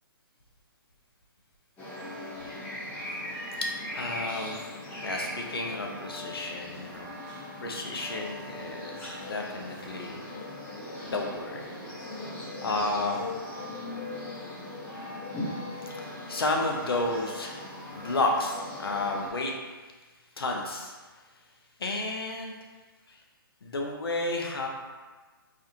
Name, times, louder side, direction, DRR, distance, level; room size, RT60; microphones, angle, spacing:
sound 1, 1.8-19.3, left 1 dB, 15° left, 0.7 m, -39 dB
voice 1, 3.6-4.6 5.0-7.1 7.6-10.2 11.0-11.6 12.6-13.2 15.7-19.5 20.4-21.0 21.8-22.5 23.1-23.2 23.6-24.7, left 2 dB, 85° left, 1 dB, 0.6 m, -32 dB
2.5 x 2.4 x 2.8 m, 1.3 s
hypercardioid pair, 145°, 12 cm